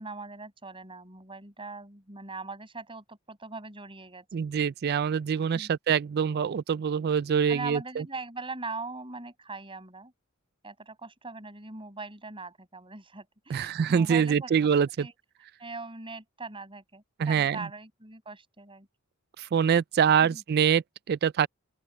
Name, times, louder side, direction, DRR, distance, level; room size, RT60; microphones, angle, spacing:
voice 1, 0.0-4.2 5.3-5.7 7.5-10.1 10.6-14.6 15.0-15.1 15.6-18.9 20.2-20.4, right 3 dB, 25° right, 5.9 m, -41 dB
voice 2, 4.3-8.0 13.5-15.1 17.2-17.6 19.4-21.5, right 7 dB, 45° right, 0.3 m, -25 dB
open air
head